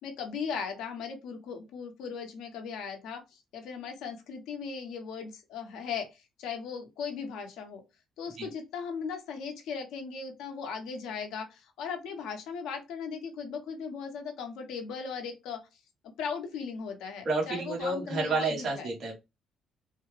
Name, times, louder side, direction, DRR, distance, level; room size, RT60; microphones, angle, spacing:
voice 1, 0.0-7.8 8.2-15.6 16.2-18.9, left 6 dB, 85° left, 4 dB, 1.1 m, -38 dB
voice 2, 17.2-19.1, right 3 dB, 40° right, -3 dB, 1.3 m, -30 dB
4.1 x 2.3 x 3.2 m, 0.24 s
cardioid pair, 160°, 0 cm